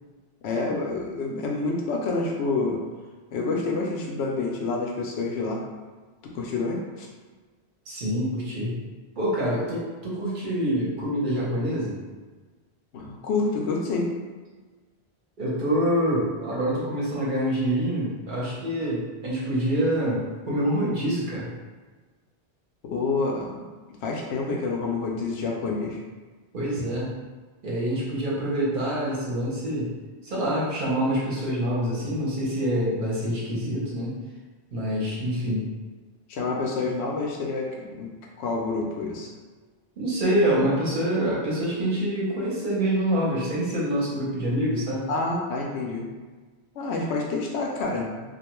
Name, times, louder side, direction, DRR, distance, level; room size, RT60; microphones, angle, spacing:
voice 1, 0.4-2.8 3.3-5.6 6.2-7.1 12.9-14.1 22.8-23.6 24.0-26.0 36.3-38.1 38.4-39.3 45.1-46.1 46.8-48.3, left 3 dB, 80° left, 0 dB, 0.8 m, -28 dB
voice 2, 7.9-8.8 9.2-12.0 15.4-21.5 26.5-27.1 27.6-29.9 30.2-34.1 34.7-35.7 40.0-45.1, equal, 50° right, -6 dB, 1.0 m, -26 dB
2.4 x 2.2 x 2.9 m, 1.4 s
omnidirectional pair, 1.1 m